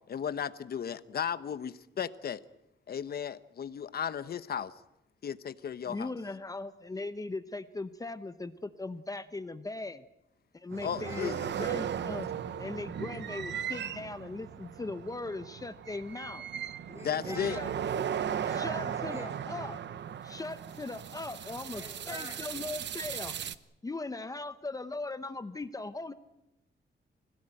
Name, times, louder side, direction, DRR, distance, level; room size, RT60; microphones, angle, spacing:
voice 1, 0.1-2.4 2.9-4.7 5.2-6.1 10.8-11.5 17.0-17.6, left 8 dB, 55° left, 13 dB, 1.0 m, -35 dB
voice 2, 5.9-10.0 10.5-12.3 12.6-16.4 17.2-17.7 18.5-19.8 20.2-23.3 23.8-26.1, left 2 dB, 20° left, 11 dB, 0.8 m, -39 dB
voice 3, 10.7-11.7 16.8-19.3 21.7-22.5, equal, 15° right, 2 dB, 5.7 m, -47 dB
sound 1, 10.7-23.5, right 9 dB, 70° right, 0.9 m, -37 dB
25.0 x 17.0 x 9.1 m, 0.89 s
wide cardioid pair, 170°, 19 cm